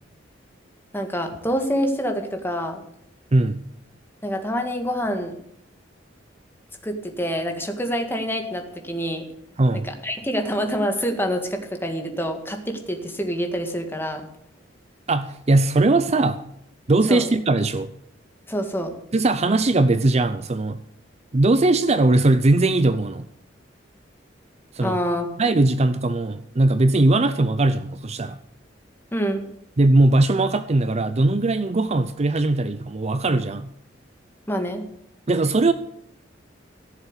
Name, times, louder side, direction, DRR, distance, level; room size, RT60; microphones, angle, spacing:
voice 1, 0.9-2.8 4.2-5.4 6.8-9.3 9.7-14.3 17.1-17.2 18.5-18.9 24.8-25.3 29.1-29.4 34.5-34.9, equal, 10° left, 4 dB, 1.9 m, -26 dB
voice 2, 15.1-16.4 16.9-17.9 19.1-20.8 21.3-23.3 24.7-25.0 25.4-28.4 29.8-33.7 35.3-35.7, right 2 dB, 35° right, 11 dB, 0.6 m, -19 dB
15.5 x 7.1 x 8.2 m, 0.72 s
head